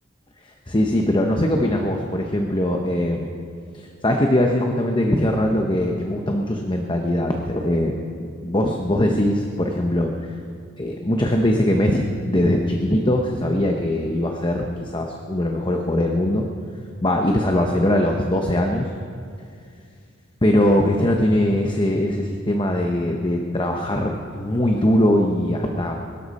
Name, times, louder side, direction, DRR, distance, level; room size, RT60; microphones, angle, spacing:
voice 1, 0.4-3.3 3.7-10.1 10.8-16.5 17.0-18.9 20.4-26.0, left 1 dB, 25° left, 2 dB, 0.9 m, -21 dB
22.5 x 13.0 x 4.2 m, 2.3 s
head